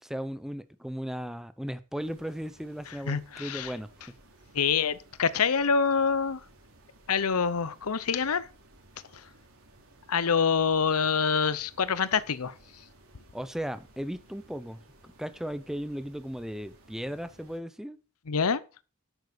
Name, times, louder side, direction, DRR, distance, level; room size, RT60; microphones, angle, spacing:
voice 1, 0.0-4.1 13.3-18.0, equal, ahead, 0.6 m, -36 dB
sound 1, 2.0-17.6, right 1 dB, 75° right, 3.2 m, -58 dB
voice 2, 3.1-3.7 4.5-6.4 7.1-8.5 9.1-9.2 10.1-12.5 18.3-18.6, left 6 dB, 85° left, 0.8 m, -26 dB
11.5 x 8.1 x 5.1 m
head